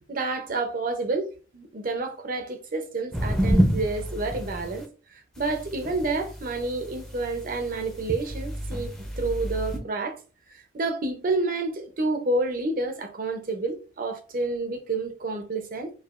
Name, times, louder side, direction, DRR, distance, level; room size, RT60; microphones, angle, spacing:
voice 1, 0.1-10.2 10.5-15.9, right 3 dB, 50° right, 0.7 m, -29 dB
sound 1, 3.1-4.8 5.3-9.8, equal, 5° left, 0.6 m, -28 dB
4.7 x 2.5 x 2.5 m
head